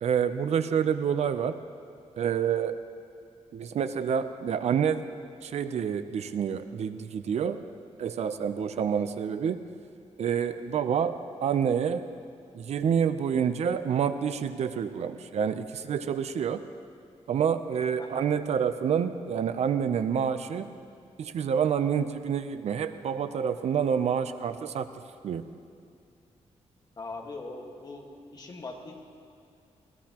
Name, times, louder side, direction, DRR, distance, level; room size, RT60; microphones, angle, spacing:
voice 1, 0.0-1.6 2.2-2.8 3.5-5.1 5.4-7.6 8.0-9.6 10.2-12.1 12.5-16.6 17.3-20.7 21.2-24.9 25.2-25.4, right 7 dB, 65° right, 11 dB, 0.6 m, -28 dB
voice 2, 27.0-29.0, left 3 dB, 35° left, 0 dB, 1.6 m, -41 dB
21.0 x 16.5 x 2.9 m, 2.4 s
wide cardioid pair, 160°, 12 cm